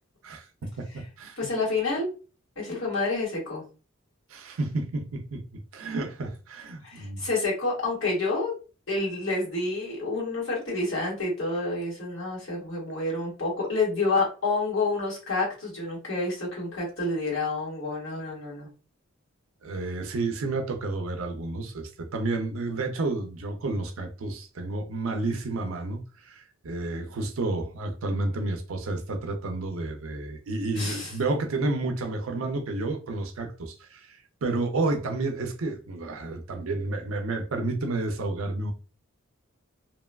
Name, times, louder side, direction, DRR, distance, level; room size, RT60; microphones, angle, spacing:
voice 1, 0.2-1.4 4.3-7.2 19.6-38.7, right 2 dB, 80° right, 0.5 m, -31 dB
voice 2, 1.4-2.1 2.6-3.6 6.8-8.5 8.9-18.7 30.7-31.1, left 3 dB, 70° left, 1.4 m, -28 dB
2.9 x 2.2 x 2.2 m
head